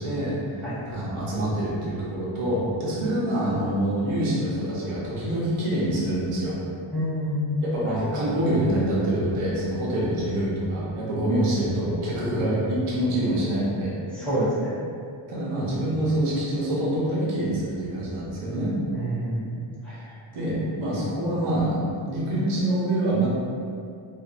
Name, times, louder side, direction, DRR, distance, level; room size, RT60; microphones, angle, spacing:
voice 1, 0.0-6.5 7.6-14.3 15.3-18.7 19.9-20.0 20.3-23.3, right 1 dB, 80° right, -6 dB, 0.9 m, -26 dB
voice 2, 6.9-7.6 14.1-14.7 18.9-19.5 19.8-19.9, equal, ahead, -14 dB, 0.8 m, -27 dB
2.6 x 2.3 x 2.4 m, 2.4 s
wide cardioid pair, 155°, 49 cm